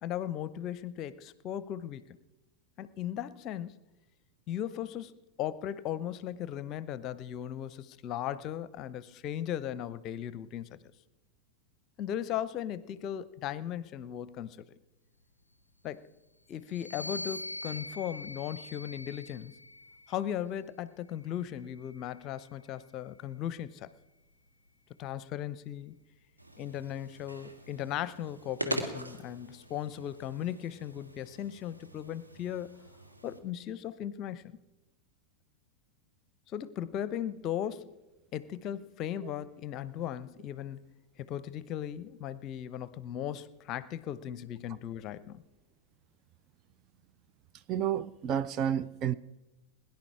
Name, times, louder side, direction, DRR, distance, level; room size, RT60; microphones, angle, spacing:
voice 1, 0.0-2.2 2.8-3.7 4.5-5.1 5.4-10.8 12.0-14.6 15.8-16.1 16.5-19.6 20.1-23.9 25.0-25.9 26.6-32.8 33.2-34.6 36.5-37.9 38.3-40.8 41.2-45.4, left 10 dB, 35° left, 0.7 m, -37 dB
sound 1, 16.7-20.3 21.1-22.7, left 2 dB, 85° left, 0.4 m, -44 dB
sound 2, 26.4-33.4, right 1 dB, 85° right, 1.6 m, -42 dB
voice 2, 47.7-49.2, right 9 dB, 35° right, 0.5 m, -30 dB
21.0 x 10.5 x 4.8 m
figure-of-eight pair, 90°, 0 cm